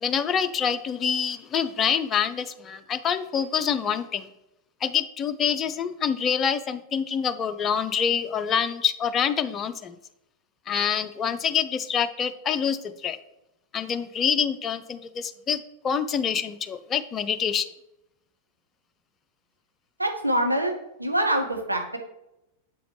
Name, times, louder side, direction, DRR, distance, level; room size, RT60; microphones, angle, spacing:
voice 1, 0.0-4.3 4.8-10.0 10.7-13.2 13.7-17.7, left 7 dB, 25° left, 9 dB, 0.4 m, -26 dB
voice 2, 20.0-22.0, right 1 dB, 85° right, 3 dB, 0.8 m, -25 dB
7.4 x 4.9 x 3.2 m, 0.89 s
figure-of-eight pair, 90°, 0 cm